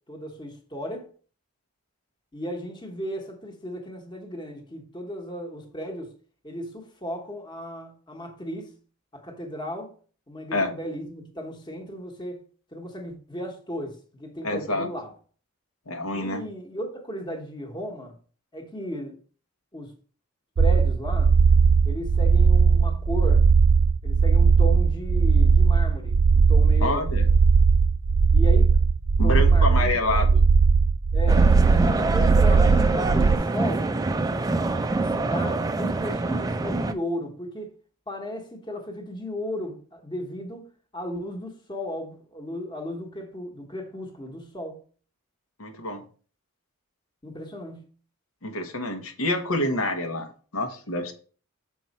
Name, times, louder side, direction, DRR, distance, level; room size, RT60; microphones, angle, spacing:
voice 1, 0.1-1.1 2.3-6.1 6.4-8.7 9.1-9.9 10.3-12.4 12.7-15.1 16.1-18.1 18.5-19.2 19.7-19.9 20.6-21.3 21.8-23.5 24.0-27.1 28.3-28.8 29.2-30.3 31.1-33.9 34.7-37.7 38.1-40.7 40.9-44.8 47.2-47.9, equal, 20° left, 1.1 m, -35 dB
voice 2, 14.4-14.9 15.9-16.4 26.8-27.3 29.2-30.4 45.6-46.0 48.4-51.1, left 2 dB, 80° left, 1.1 m, -27 dB
sound 1, 20.6-33.4, right 5 dB, 75° right, 0.5 m, -18 dB
sound 2, 31.3-36.9, right 2 dB, 15° right, 0.3 m, -25 dB
6.1 x 4.6 x 4.2 m
head